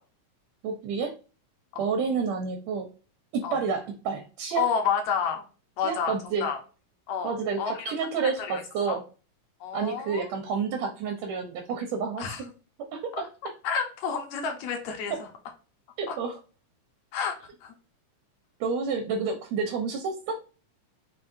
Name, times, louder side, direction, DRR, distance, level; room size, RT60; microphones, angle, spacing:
voice 1, 0.6-1.1 1.8-2.9 3.3-4.6 5.8-6.5 7.2-9.0 9.7-12.5 12.9-13.1 16.0-16.4 18.6-20.3, right 5 dB, 75° right, 4 dB, 1.7 m, -29 dB
voice 2, 4.6-5.4 5.8-6.6 7.1-7.9 8.5-8.6 8.9-9.0 9.6-10.2 12.2-12.4 13.2-13.3 13.6-15.3 16.1-16.2 17.1-17.4 17.6-17.7, left 6 dB, 70° left, 4 dB, 1.9 m, -30 dB
4.7 x 4.1 x 2.6 m, 0.35 s
omnidirectional pair, 3.8 m